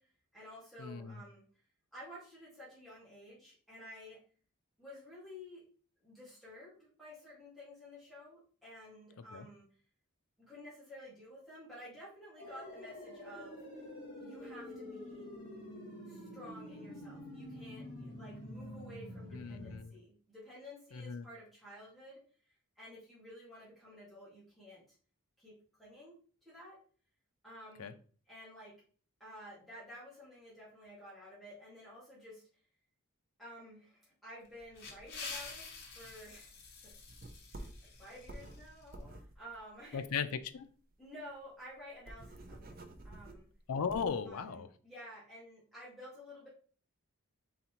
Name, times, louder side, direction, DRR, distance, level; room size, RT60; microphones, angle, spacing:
voice 1, 0.0-1.4 1.9-4.2 4.8-5.6 6.0-9.6 10.4-13.6 14.2-15.3 16.1-22.2 22.5-25.0 25.4-26.1 26.4-26.8 27.4-28.0 28.3-28.7 29.2-32.4 33.4-35.6 35.9-36.5 37.5-37.7 38.0-40.0 41.0-42.7 43.0-43.5 44.3-46.5, equal, ahead, -9 dB, 1.8 m, -52 dB
voice 2, 0.8-1.2 9.3-9.5 19.3-19.9 20.9-21.3 27.8-27.9 39.9-40.7 43.7-44.7, left 6 dB, 80° left, 10 dB, 0.5 m, -37 dB
sound 1, 12.4-19.8, left 1 dB, 25° left, 2.0 m, -47 dB
sound 2, 34.4-39.0, left 4 dB, 45° left, 1.1 m, -48 dB
sound 3, 36.9-40.6 40.9-41.0 41.3-41.4 41.7-44.3, right 1 dB, 40° right, 0.5 m, -50 dB
4.1 x 4.0 x 3.0 m, 0.42 s
head